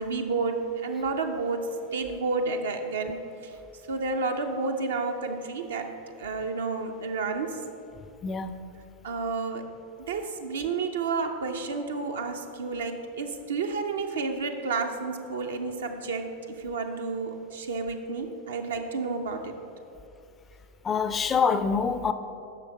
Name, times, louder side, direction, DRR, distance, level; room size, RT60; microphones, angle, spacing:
voice 1, 0.0-3.6 3.9-7.6 9.0-9.7 10.1-19.6, right 4 dB, 65° right, 0.5 m, -31 dB
voice 2, 8.2-8.6 20.8-22.1, left 5 dB, 20° left, 0.4 m, -25 dB
9.8 x 6.2 x 4.2 m
figure-of-eight pair, 90°, 0 cm